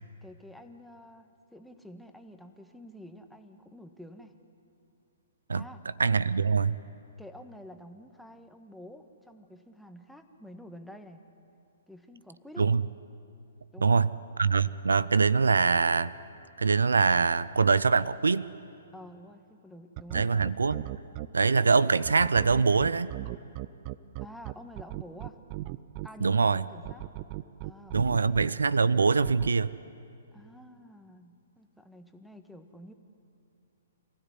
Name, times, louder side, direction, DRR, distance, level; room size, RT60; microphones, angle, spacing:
voice 1, 0.2-4.3 5.5-5.8 7.2-11.2 11.9-12.7 13.7-14.1 18.9-20.5 24.2-25.4 26.0-27.0 27.6-28.4 30.3-32.9, equal, ahead, 5 dB, 1.6 m, -49 dB
voice 2, 6.0-6.7 12.6-12.8 13.8-14.1 14.4-16.1 16.6-18.5 20.1-20.9 21.3-23.1 26.2-26.6 27.9-29.7, right 4 dB, 75° right, 18 dB, 0.6 m, -23 dB
sound 1, 20.0-21.3 22.0-26.1 26.8-28.5 29.2-29.5, right 17 dB, 35° right, 0.6 m, -37 dB
27.5 x 16.0 x 9.7 m, 2.7 s
figure-of-eight pair, 120°, 0 cm